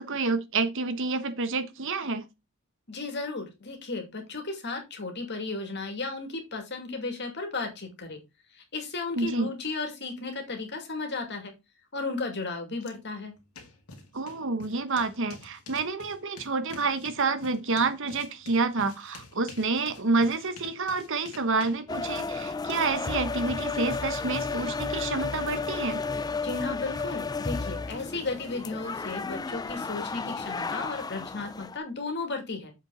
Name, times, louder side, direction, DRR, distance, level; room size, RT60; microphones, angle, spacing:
voice 1, 0.0-2.2 9.2-9.5 14.1-26.0, right 3 dB, 55° right, 1.1 m, -28 dB
voice 2, 2.9-8.2 8.5-11.5 11.9-13.3 26.4-32.7, left 3 dB, 50° left, 2.4 m, -34 dB
sound 1, 12.8-12.9 13.2-23.4, left 3 dB, 80° left, 2.1 m, -49 dB
sound 2, 21.9-31.8, left 4 dB, 15° left, 0.3 m, -33 dB
7.2 x 5.7 x 3.9 m
head